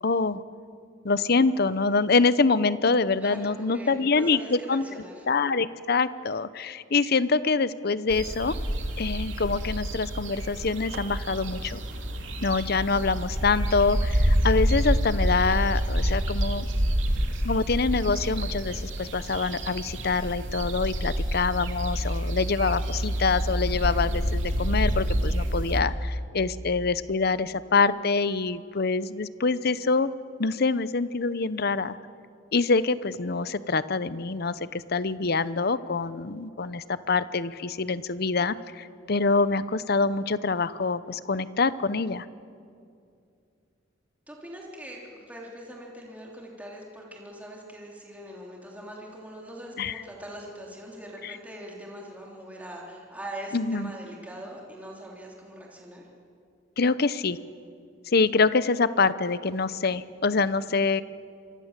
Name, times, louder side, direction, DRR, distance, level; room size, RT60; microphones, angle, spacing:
voice 1, 0.0-0.4 1.0-4.8 5.3-8.5 9.0-11.8 12.4-16.7 17.4-30.1 30.4-32.0 32.5-42.3 49.8-50.0 51.2-51.3 53.5-53.9 56.8-57.4 58.1-61.0, left 4 dB, 55° left, 15 dB, 0.8 m, -25 dB
voice 2, 3.2-5.3 44.3-56.1, right 1 dB, 10° right, -2 dB, 3.4 m, -42 dB
sound 1, 8.1-25.8, equal, 80° right, 2.8 m, -28 dB
27.5 x 24.0 x 7.5 m, 2.4 s
head